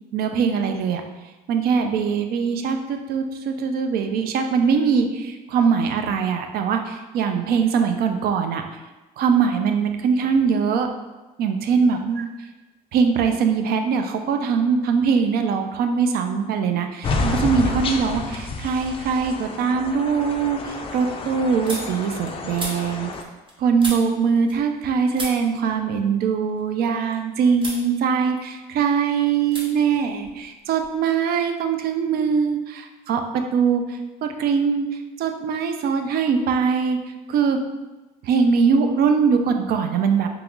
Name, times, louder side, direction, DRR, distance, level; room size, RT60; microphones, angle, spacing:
voice 1, 0.1-1.0 1.5-8.6 9.2-10.9 11.4-12.3 12.9-23.1 23.6-34.8 35.2-37.0 37.3-37.6 38.2-40.3, right 6 dB, 65° right, 6 dB, 0.4 m, -22 dB
sound 1, 17.0-23.2, left 3 dB, 35° left, 0.3 m, -29 dB
sound 2, 20.8-24.9 25.1-27.2 27.6-27.9 28.2-29.0 29.5-29.7 29.9-31.0, right 1 dB, 30° right, 0.8 m, -37 dB
3.0 x 2.3 x 3.6 m, 1.1 s
cardioid pair, 110°, 17 cm